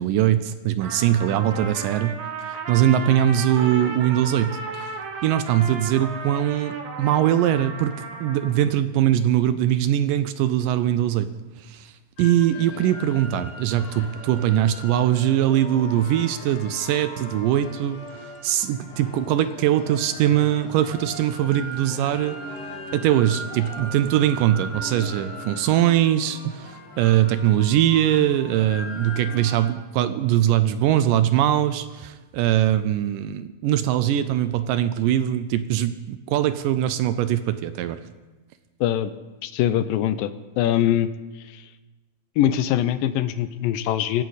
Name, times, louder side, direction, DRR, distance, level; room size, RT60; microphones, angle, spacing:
voice 1, 0.0-2.2 2.4-5.0 5.2-11.3 11.6-11.9 12.2-22.4 22.9-38.0, right 11 dB, 80° right, 12 dB, 2.1 m, -22 dB
Trumpet, 0.8-8.7, right 4 dB, 60° right, 2.6 m, -35 dB
sound 1, 12.2-29.7, left 1 dB, 60° left, 3.4 m, -39 dB
voice 2, 38.8-39.1 39.4-40.3 40.6-41.1 41.5-41.6 42.4-44.2, left 11 dB, 80° left, 13 dB, 2.3 m, -22 dB
24.5 x 12.0 x 4.1 m, 1.2 s
omnidirectional pair, 4.1 m